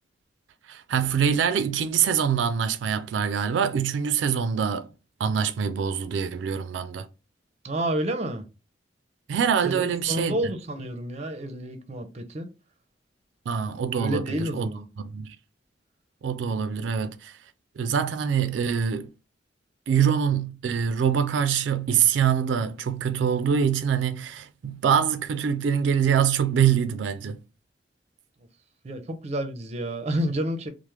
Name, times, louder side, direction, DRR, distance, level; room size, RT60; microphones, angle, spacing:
voice 1, 0.7-4.9 5.2-7.1 9.3-10.4 13.5-14.7 15.0-15.4 16.2-17.4 17.8-19.1 19.9-27.4, right 7 dB, 90° right, 0.3 m, -24 dB
voice 2, 7.6-8.4 9.6-12.5 13.9-14.9 28.8-30.7, right 1 dB, 40° right, 0.5 m, -30 dB
3.2 x 2.0 x 3.0 m
head